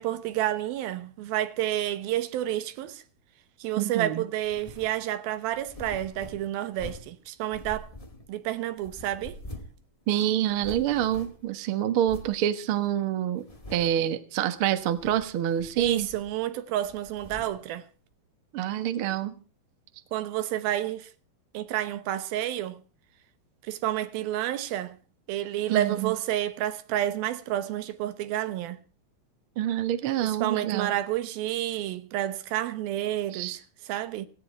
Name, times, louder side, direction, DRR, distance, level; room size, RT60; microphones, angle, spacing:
voice 1, 0.0-3.0 3.6-7.9 8.3-9.4 15.8-17.8 20.1-21.1 21.5-22.8 23.6-25.0 25.3-28.8 30.2-33.6 33.9-34.3, right 13 dB, 80° right, 2.9 m, -30 dB
voice 2, 3.8-4.2 10.1-13.4 13.7-16.1 18.5-19.3 25.7-26.1 29.6-31.0 33.3-33.6, right 11 dB, 60° right, 1.4 m, -27 dB
sound 1, 4.4-5.0 5.5-7.2 7.5-8.5 8.8-9.8 10.1-10.2 10.4-11.5 12.0-12.4 12.9-13.0 13.4-14.1 14.8-15.3 15.6-16.5 16.8-17.6, equal, 20° left, 0.8 m, -44 dB
17.0 x 17.0 x 4.5 m
omnidirectional pair, 4.2 m